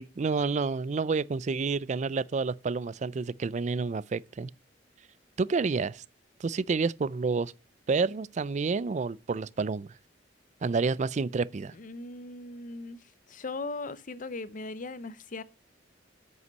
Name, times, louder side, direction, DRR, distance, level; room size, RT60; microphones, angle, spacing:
voice 1, 0.0-4.5 5.4-6.0 6.4-7.5 7.9-9.9 10.6-11.7, right 4 dB, 40° right, 0.4 m, -29 dB
voice 2, 11.7-13.0 13.3-15.4, left 3 dB, 45° left, 0.7 m, -38 dB
8.3 x 7.9 x 5.4 m
head